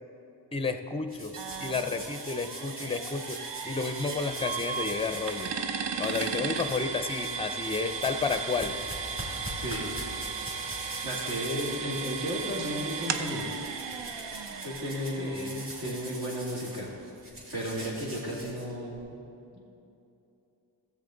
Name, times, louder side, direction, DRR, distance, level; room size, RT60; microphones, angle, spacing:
voice 1, 0.5-1.3 1.6-3.4 3.6-5.5 6.0-8.7 15.2-15.6, left 4 dB, 15° left, 8 dB, 0.5 m, -31 dB
sound 1, 1.1-5.5 6.0-6.8 7.1-19.0, right 1 dB, 30° right, 2.4 m, -43 dB
sound 2, 1.3-17.0, right 6 dB, 80° right, 0.7 m, -36 dB
voice 2, 9.5-9.9 10.7-13.4 14.2-16.9 17.5-19.0 19.5-19.6, equal, 60° right, -5 dB, 2.8 m, -34 dB
17.0 x 7.5 x 3.9 m, 2.8 s
wide cardioid pair, 140°, 42 cm